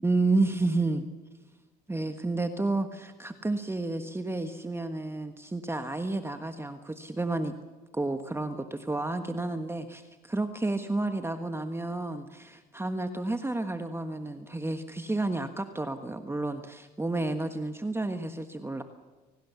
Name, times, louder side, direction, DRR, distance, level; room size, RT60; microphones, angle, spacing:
voice 1, 0.0-1.0 1.9-7.5 7.9-18.8, right 2 dB, 10° right, 8 dB, 1.4 m, -31 dB
25.0 x 18.0 x 7.1 m, 1.2 s
supercardioid pair, 80°, 21 cm